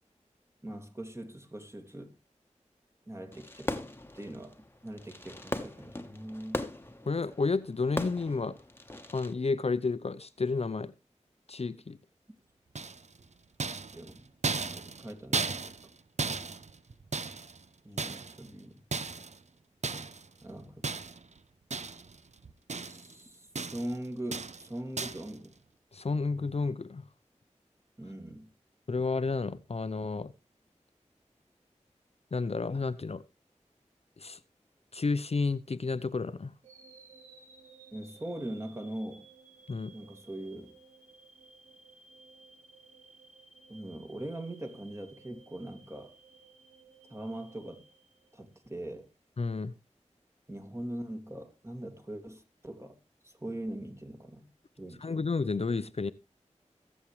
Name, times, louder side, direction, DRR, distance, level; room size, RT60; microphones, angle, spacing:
voice 1, 0.6-2.1 3.1-3.9 4.1-6.6 13.9-14.2 14.5-15.7 17.8-18.8 20.4-21.0 22.8-25.6 28.0-28.5 37.9-39.3 39.9-40.7 43.7-46.2 47.1-47.8 48.3-49.1 50.5-53.0 53.2-54.5 54.8-55.2, right 1 dB, 20° right, 2.2 m, -41 dB
Fireworks, 3.3-9.3, left 1 dB, 20° left, 1.2 m, -39 dB
voice 2, 7.1-8.6 9.1-10.9 11.5-12.0 25.9-27.0 28.9-30.3 32.3-33.2 34.2-34.4 34.9-36.5 39.7-39.9 49.4-49.7 55.0-56.1, left 4 dB, 55° left, 0.6 m, -31 dB
sound 1, 12.7-13.2 13.6-15.9 16.2-17.6 18.0-18.5 18.9-19.4 19.8-20.3 20.8-21.3 21.7-22.2 22.4-23.1 23.5-24.0 24.3-24.7 25.0-25.3, right 4 dB, 65° right, 0.7 m, -35 dB
sound 2, 36.6-48.8, right 4 dB, 90° right, 2.2 m, -57 dB
21.5 x 7.3 x 3.2 m
wide cardioid pair, 50°, 12 cm